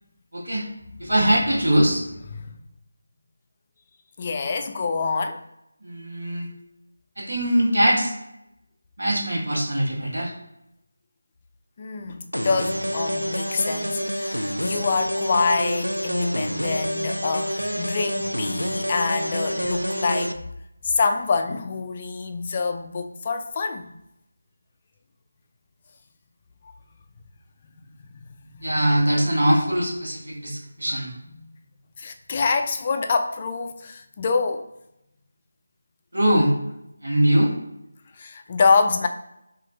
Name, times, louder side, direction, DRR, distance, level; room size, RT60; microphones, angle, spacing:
voice 1, 0.3-0.7 1.0-2.0 5.8-6.5 7.2-8.1 9.0-10.3 28.6-31.1 36.1-36.5 37.0-37.5, right 1 dB, 60° right, -1 dB, 1.3 m, -21 dB
voice 2, 4.2-5.4 11.8-20.4 20.8-23.9 28.1-28.8 32.0-34.6 38.2-39.1, left 4 dB, 25° left, 6 dB, 0.4 m, -26 dB
sound 1, 12.3-20.3, equal, 90° right, 0.4 m, -27 dB
5.7 x 2.4 x 2.7 m, 0.83 s
figure-of-eight pair, 160°, 0 cm